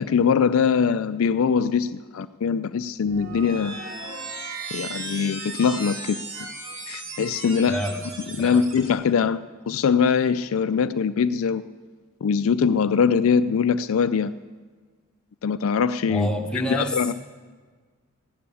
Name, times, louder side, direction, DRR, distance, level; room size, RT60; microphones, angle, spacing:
voice 1, 0.0-3.8 4.7-6.2 6.9-7.8 8.4-9.4 9.7-11.6 12.2-14.3 15.4-16.3 16.6-17.1, left 6 dB, 70° left, 13 dB, 0.4 m, -22 dB
sound 1, 3.0-8.9, right 3 dB, 60° right, 2.8 m, -36 dB
voice 2, 16.1-17.0, equal, 5° left, -1 dB, 1.3 m, -27 dB
15.5 x 9.8 x 7.0 m, 1.5 s
head